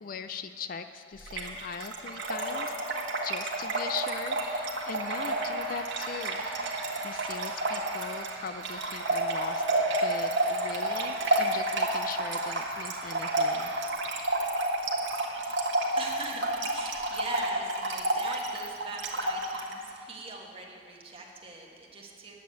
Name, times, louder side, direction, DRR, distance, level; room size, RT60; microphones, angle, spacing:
voice 1, 0.0-2.8 3.2-9.7 10.0-13.7, left 5 dB, 50° left, 10 dB, 0.4 m, -40 dB
Trickle dribble / Fill (with liquid), 1.3-19.7, right 2 dB, 90° right, 1.4 m, -30 dB
sound 1, 4.1-13.9, right 4 dB, 70° right, 0.9 m, -43 dB
voice 2, 15.3-15.7 15.9-22.4, right 2 dB, 30° right, -1 dB, 1.6 m, -41 dB
10.0 x 7.5 x 8.4 m, 2.4 s
head